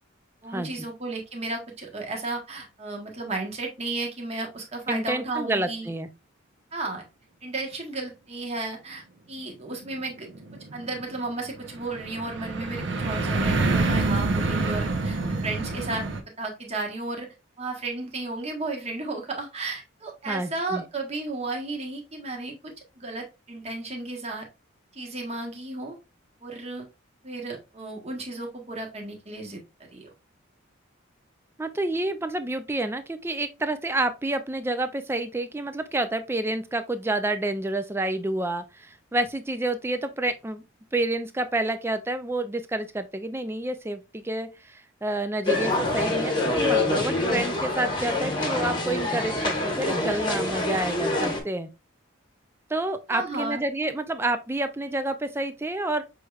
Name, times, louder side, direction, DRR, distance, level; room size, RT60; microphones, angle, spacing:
voice 1, 0.4-5.9 6.7-7.0 7.4-10.3 10.7-16.1 16.4-17.3 17.6-24.5 24.9-26.0 26.4-26.9 27.2-29.6 29.9-30.1 53.1-53.6, right 2 dB, 30° right, 1.1 m, -33 dB
voice 2, 4.9-6.1 20.3-20.8 31.6-40.6 40.9-51.7 52.7-56.0, right 2 dB, 10° right, 0.3 m, -29 dB
sound 1, 9.8-16.2, right 3 dB, 60° right, 0.7 m, -27 dB
sound 2, 45.5-51.4, left 2 dB, 20° left, 1.0 m, -26 dB
6.2 x 3.2 x 2.3 m
head